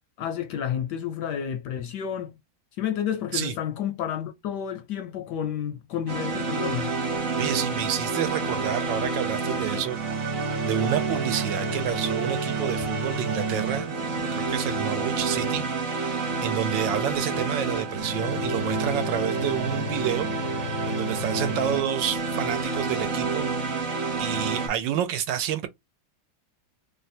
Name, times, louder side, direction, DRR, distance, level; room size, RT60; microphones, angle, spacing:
voice 1, 0.2-2.4 2.8-6.9, left 9 dB, 75° left, 1.0 m, -30 dB
sound 1, 6.1-24.7, right 3 dB, 50° right, 1.2 m, -28 dB
voice 2, 7.4-14.0 14.3-20.3 20.9-23.9 24.2-25.7, right 10 dB, 75° right, 1.3 m, -29 dB
3.1 x 2.2 x 4.1 m
omnidirectional pair, 2.1 m